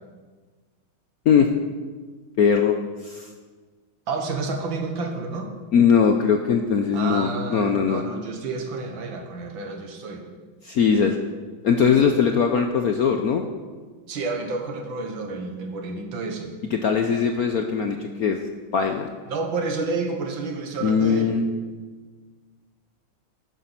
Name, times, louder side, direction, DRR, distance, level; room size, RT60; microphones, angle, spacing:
voice 1, 2.4-2.8 3.0-3.3 5.7-8.0 10.6-11.2 11.6-13.4 16.7-18.4 18.7-19.1 20.8-21.4, left 6 dB, 65° left, 5 dB, 0.9 m, -20 dB
voice 2, 4.1-5.5 6.9-10.3 14.1-16.5 19.3-21.4, right 3 dB, 70° right, 4 dB, 2.1 m, -30 dB
12.0 x 9.3 x 5.7 m, 1.4 s
omnidirectional pair, 2.3 m